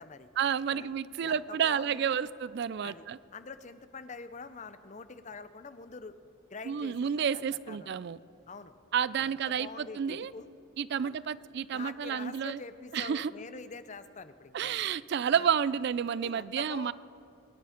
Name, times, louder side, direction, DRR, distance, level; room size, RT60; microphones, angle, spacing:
voice 1, 0.4-3.2 6.7-8.2 8.9-10.3 10.8-12.6 12.9-13.3 14.5-16.9, right 8 dB, 50° right, 18 dB, 0.3 m, -30 dB
voice 2, 1.2-2.2 2.8-3.0 3.3-6.1 6.5-7.2 7.7-7.9 8.5-8.7 9.2-10.5 11.7-14.8 15.3-15.5 16.2-16.9, left 4 dB, 35° left, 12 dB, 0.6 m, -45 dB
24.0 x 10.0 x 5.0 m, 2.7 s
head